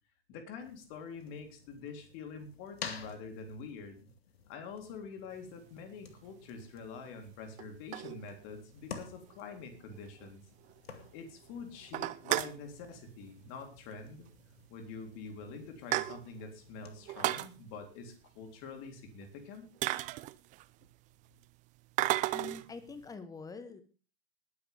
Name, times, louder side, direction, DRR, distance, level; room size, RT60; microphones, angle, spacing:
voice 1, 0.3-4.1 4.5-10.5 11.1-14.3 14.7-19.7, left 5 dB, 40° left, 5 dB, 3.6 m, -46 dB
sound 1, 0.6-17.4, left 6 dB, 65° left, 2.2 m, -52 dB
sound 2, 5.7-5.8 6.6-6.7 7.6-8.6 9.0-9.1 9.3-9.4 9.8-9.9 10.2-10.3 10.6-11.1 11.4-11.5 11.8-12.6 13.7-14.0 14.3-14.4 15.1-15.2 15.5-16.5 17.0-17.5 19.2-19.3 19.8-20.8 22.0-22.7, right 17 dB, 25° right, 0.6 m, -33 dB
voice 2, 22.3-23.8, left 4 dB, 10° left, 12 dB, 1.4 m, -45 dB
19.5 x 10.0 x 3.5 m, 0.35 s
figure-of-eight pair, 105°, 32 cm